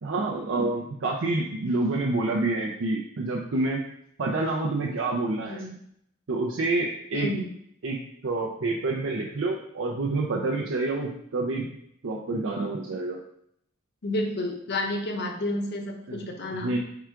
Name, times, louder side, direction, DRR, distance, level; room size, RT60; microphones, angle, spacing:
voice 1, 0.0-3.8 4.2-5.6 6.3-7.3 7.8-8.0 8.2-11.7 12.0-13.2 16.1-16.2 16.6-16.8, right 2 dB, 70° right, -2 dB, 0.5 m, -28 dB
voice 2, 7.1-7.5 14.0-16.8, left 1 dB, 55° left, 2 dB, 0.8 m, -30 dB
4.7 x 2.4 x 4.4 m, 0.72 s
head